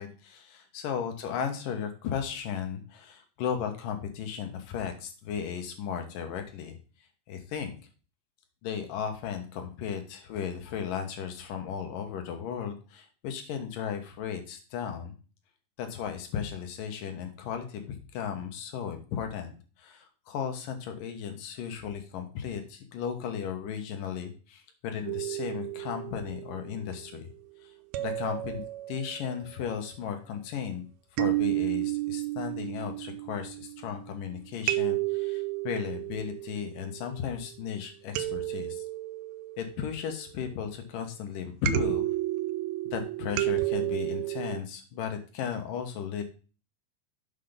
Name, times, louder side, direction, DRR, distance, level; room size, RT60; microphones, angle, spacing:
voice 1, 0.0-6.8 7.3-7.8 8.6-15.1 15.8-19.5 19.8-27.3 28.0-28.6 28.9-30.8 31.2-38.8 39.6-42.1 42.9-46.2, left 8 dB, 80° left, 6 dB, 2.9 m, -35 dB
sound 1, 25.1-27.1 27.9-29.4 31.2-34.1 34.7-37.3 38.1-40.4 41.7-44.6, right 17 dB, 90° right, 1.6 m, -32 dB
7.4 x 5.9 x 5.1 m, 0.35 s
omnidirectional pair, 3.8 m